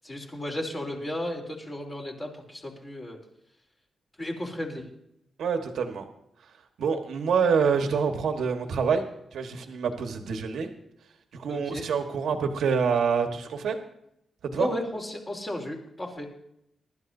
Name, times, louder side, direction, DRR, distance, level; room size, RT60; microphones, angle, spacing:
voice 1, 0.0-3.2 4.2-4.8 11.5-11.8 14.5-16.3, left 1 dB, 25° left, 1 dB, 3.3 m, -34 dB
voice 2, 5.4-6.0 6.8-9.0 9.3-10.7 11.3-13.8 14.4-14.7, right 6 dB, 90° right, 5 dB, 1.4 m, -26 dB
23.0 x 12.5 x 2.7 m, 0.79 s
wide cardioid pair, 150°, 0 cm